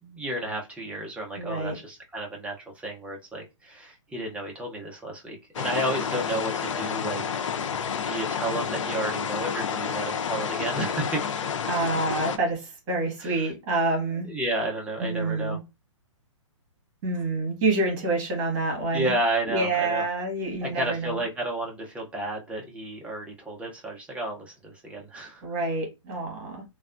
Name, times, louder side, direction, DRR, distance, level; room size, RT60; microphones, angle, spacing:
voice 1, 0.0-7.4 8.1-11.4 13.2-13.3 14.3-15.6 18.9-20.0 20.6-25.4, right 1 dB, 5° right, 0.7 m, -32 dB
voice 2, 1.3-1.7 11.7-14.3 15.0-15.6 17.0-19.1 19.4-21.2 25.4-26.6, right 2 dB, 40° right, 1.7 m, -27 dB
sound 1, 5.5-12.4, left 7 dB, 70° left, 0.5 m, -30 dB
3.2 x 2.3 x 2.5 m
hypercardioid pair, 135°, 17 cm